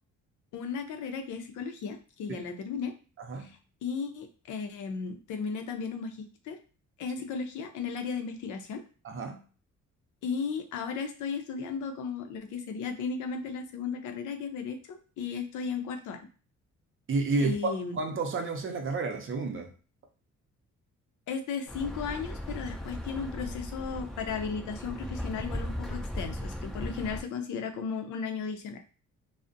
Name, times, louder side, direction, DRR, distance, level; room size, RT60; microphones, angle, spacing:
voice 1, 0.5-2.9 3.4-6.6 7.0-8.8 10.2-16.2 17.4-18.0 21.3-28.8, left 5 dB, 75° left, 0.5 m, -35 dB
voice 2, 3.2-3.5 9.0-9.4 17.1-19.7, right 3 dB, 45° right, 0.6 m, -31 dB
sound 1, 21.7-27.2, equal, ahead, 0.5 m, -37 dB
2.4 x 2.0 x 2.5 m
cardioid pair, 90°, 30 cm